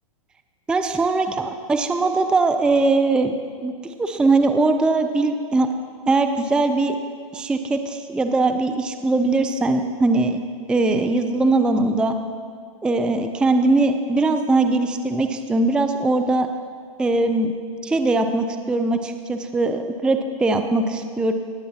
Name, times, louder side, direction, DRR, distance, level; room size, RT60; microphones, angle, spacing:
voice 1, 0.7-3.3 3.6-3.7 4.0-5.7 6.1-7.0 7.3-10.4 10.7-12.2 12.8-16.5 17.0-17.5 17.8-21.3, right 3 dB, 5° right, 7 dB, 0.4 m, -20 dB
19.5 x 8.3 x 2.8 m, 2.2 s
hypercardioid pair, 110°, 18 cm